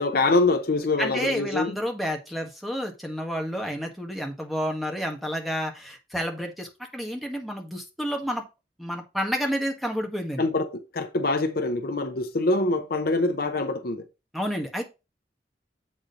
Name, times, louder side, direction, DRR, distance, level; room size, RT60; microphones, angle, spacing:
voice 1, 0.0-1.8 10.4-14.1, left 2 dB, 55° left, 0.8 m, -24 dB
voice 2, 1.0-8.4 8.8-10.4 14.3-14.8, equal, ahead, 1.6 m, -30 dB
7.6 x 4.3 x 5.1 m
head